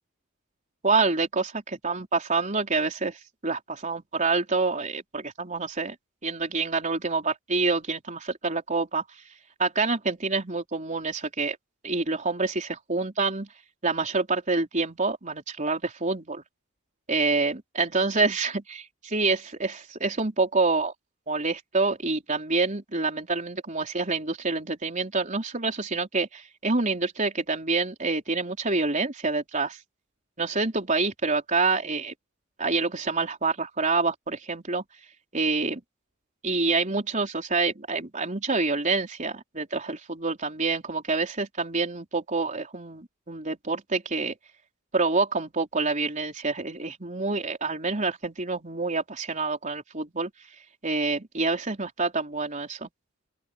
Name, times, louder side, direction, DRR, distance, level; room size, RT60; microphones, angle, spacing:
voice 1, 0.8-1.5 1.8-3.2 3.4-6.0 6.2-9.0 9.6-11.6 11.8-13.5 13.8-16.4 17.1-20.9 21.3-29.8 30.4-32.1 32.6-34.8 35.3-35.8 36.4-44.3 44.9-50.3 50.8-52.9, right 3 dB, 35° right, 4.2 m, -27 dB
open air
head